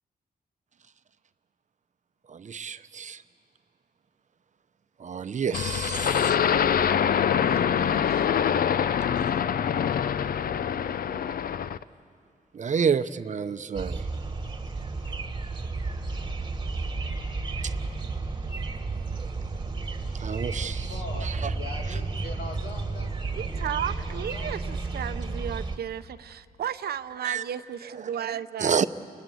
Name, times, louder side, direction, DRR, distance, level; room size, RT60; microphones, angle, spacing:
voice 1, 2.3-3.2 5.0-6.4 12.5-14.0 17.6-17.7 20.2-20.9 21.2-21.3 27.2-27.4 28.6-28.9, right 6 dB, 50° right, 12 dB, 0.7 m, -29 dB
sound 1, 5.5-11.8, left 8 dB, 70° left, 0.6 m, -24 dB
voice 2, 7.4-8.3 23.4-28.8, right 9 dB, 90° right, 13 dB, 0.7 m, -34 dB
sound 2, 13.7-25.8, right 3 dB, 30° right, 1.5 m, -32 dB
voice 3, 20.8-24.8 25.3-25.5, left 3 dB, 90° left, 2 dB, 2.5 m, -43 dB
29.5 x 20.5 x 7.8 m, 2.3 s
wide cardioid pair, 105°, 16 cm